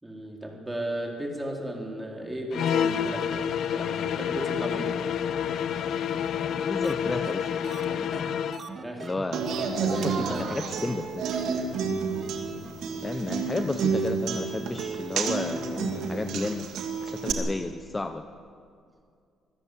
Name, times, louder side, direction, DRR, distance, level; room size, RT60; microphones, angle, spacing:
voice 1, 0.0-4.9 8.8-9.1 9.8-10.4, right 1 dB, 10° right, 0 dB, 4.1 m, -35 dB
sound 1, 2.5-8.7, left 8 dB, 70° left, 0.9 m, -28 dB
voice 2, 6.6-7.6 7.9-8.1 9.0-11.3 13.0-16.7 17.0-18.3, left 2 dB, 20° left, 8 dB, 0.9 m, -32 dB
sound 2, 6.8-6.9 7.2-7.3 7.6-9.7 9.9-10.1 10.3-10.5 10.9-11.0 11.2-11.4 11.7-11.8 12.1-12.3 12.6-12.7 13.0-13.1, right 5 dB, 40° right, 1.5 m, -42 dB
Human voice / Acoustic guitar, 9.3-17.3, right 5 dB, 75° right, 2.6 m, -30 dB
25.0 x 15.0 x 8.6 m, 2.3 s
cardioid pair, 105°, 0 cm